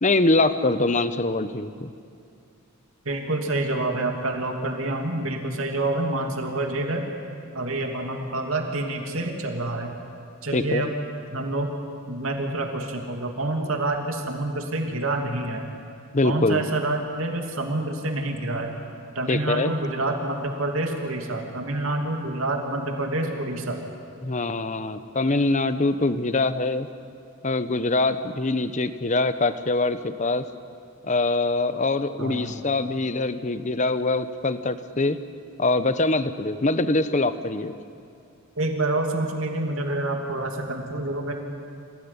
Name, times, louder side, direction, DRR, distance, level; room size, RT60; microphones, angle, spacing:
voice 1, 0.0-1.9 10.5-10.8 16.1-16.6 19.3-19.7 24.2-26.9 27.4-30.4 31.0-35.2 35.6-37.7, left 2 dB, 35° left, 12 dB, 0.9 m, -23 dB
voice 2, 3.0-7.0 7.5-10.0 10.4-10.9 11.3-11.7 12.1-15.6 16.2-18.7 19.1-23.8 32.2-32.8 38.6-41.3, right 2 dB, 75° right, 3 dB, 2.8 m, -27 dB
26.5 x 17.0 x 9.9 m, 2.4 s
head